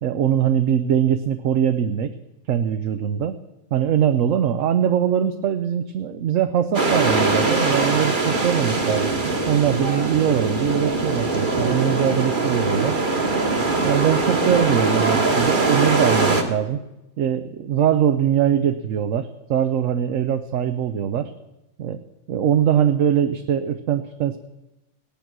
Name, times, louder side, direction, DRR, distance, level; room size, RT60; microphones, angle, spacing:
voice 1, 0.0-2.1 2.5-3.4 3.7-9.1 9.5-12.9 13.8-16.8 17.2-21.3 21.8-22.0 22.3-24.4, right 9 dB, 70° right, 9 dB, 1.1 m, -22 dB
sound 1, 6.7-16.4, right 3 dB, 40° right, 1.5 m, -22 dB
16.5 x 10.5 x 6.1 m, 0.95 s
omnidirectional pair, 1.4 m